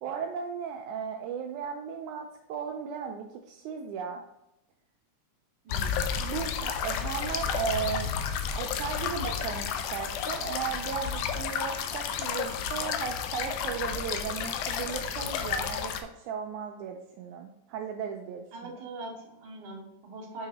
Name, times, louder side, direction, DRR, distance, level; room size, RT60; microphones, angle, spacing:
voice 1, 0.0-4.2 6.2-8.1 8.6-18.7, right 7 dB, 80° right, 3 dB, 2.0 m, -36 dB
voice 2, 5.6-6.0 18.5-20.5, right 2 dB, 55° right, -1 dB, 2.3 m, -42 dB
sound 1, 5.7-16.0, left 7 dB, 80° left, 2.0 m, -32 dB
7.2 x 5.6 x 2.9 m, 0.89 s
omnidirectional pair, 3.5 m